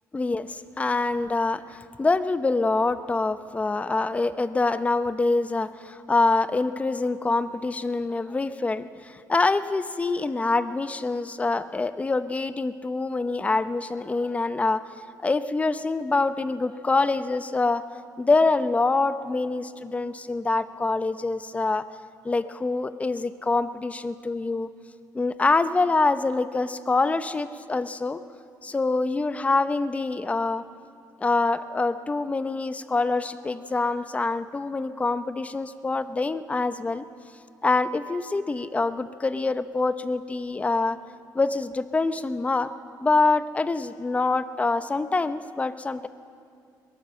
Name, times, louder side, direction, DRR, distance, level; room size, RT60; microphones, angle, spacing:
voice 1, 0.1-14.8 15.2-17.8 18.2-21.8 22.2-24.7 25.1-28.2 28.6-30.6 31.2-37.0 37.6-41.0 41.3-42.7 43.0-46.1, left 3 dB, 20° left, 13 dB, 0.7 m, -25 dB
22.5 x 18.5 x 7.6 m, 2.4 s
cardioid pair, 120°, 7 cm